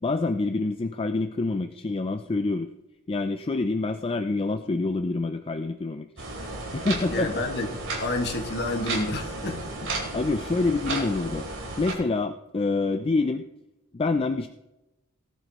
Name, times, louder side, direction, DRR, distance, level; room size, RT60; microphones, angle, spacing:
voice 1, 0.0-2.7 3.1-6.1 6.7-7.4 10.1-11.4 11.8-13.5 13.9-14.5, left 3 dB, 25° left, 8 dB, 0.4 m, -26 dB
sound 1, 6.2-11.9, right 2 dB, 60° right, 4.3 m, -33 dB
voice 2, 7.1-7.7 8.0-9.7, left 2 dB, 50° left, 3 dB, 1.9 m, -29 dB
19.0 x 11.0 x 3.1 m, 0.97 s
head